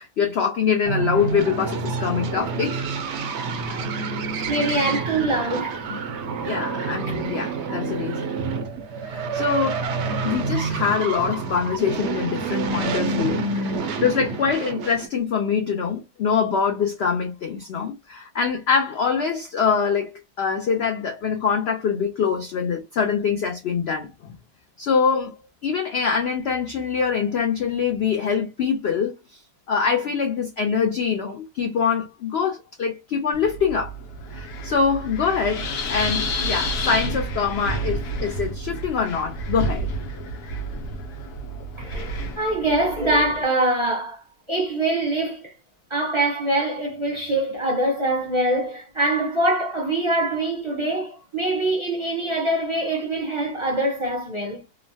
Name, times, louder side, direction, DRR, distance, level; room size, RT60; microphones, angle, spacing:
voice 1, 0.0-2.9 6.4-8.4 9.0-9.9 10.2-24.3 24.8-25.3 25.6-29.4 29.7-33.9 34.3-39.9, left 6 dB, 65° left, 0.6 m, -24 dB
sound 1, 0.8-15.1, right 4 dB, 65° right, 0.7 m, -28 dB
voice 2, 4.4-5.8 7.1-7.2 41.8-44.2 44.5-45.5 45.9-54.6, right 1 dB, 25° right, 0.7 m, -24 dB
Wind, 33.3-43.4, equal, 85° left, 1.2 m, -30 dB
3.0 x 2.1 x 2.6 m
omnidirectional pair, 1.6 m